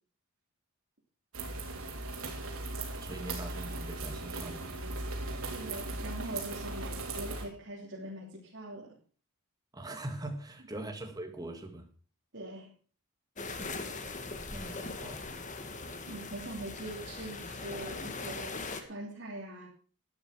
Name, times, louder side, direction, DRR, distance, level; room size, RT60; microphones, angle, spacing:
sound 1, 1.3-7.5, right 2 dB, 80° right, 3.2 m, -38 dB
voice 1, 3.0-4.8 9.7-11.9 14.5-15.2, right 1 dB, 15° right, 1.9 m, -42 dB
voice 2, 5.5-9.0 12.3-12.7 13.6-13.7 16.1-19.7, right 1 dB, 55° right, 3.4 m, -43 dB
sound 2, 13.4-18.8, left 3 dB, 35° left, 1.4 m, -40 dB
12.5 x 9.4 x 6.0 m
head